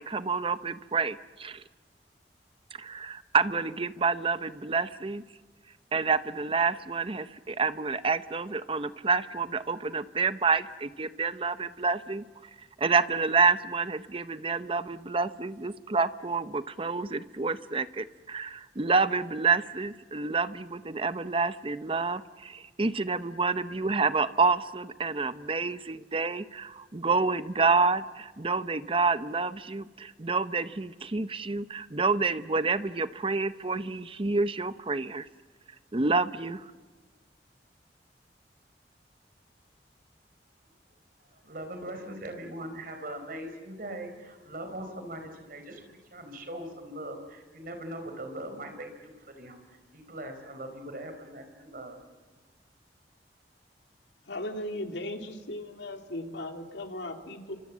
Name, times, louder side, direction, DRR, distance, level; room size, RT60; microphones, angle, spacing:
voice 1, 0.0-1.6 2.8-5.2 5.9-12.2 12.8-35.3 35.9-36.6, right 4 dB, 30° right, 13 dB, 0.7 m, -28 dB
voice 2, 40.9-52.0, right 1 dB, 55° right, 6 dB, 4.3 m, -41 dB
voice 3, 54.3-57.6, left 1 dB, 80° left, 4 dB, 2.6 m, -37 dB
29.0 x 25.5 x 7.3 m, 1.4 s
head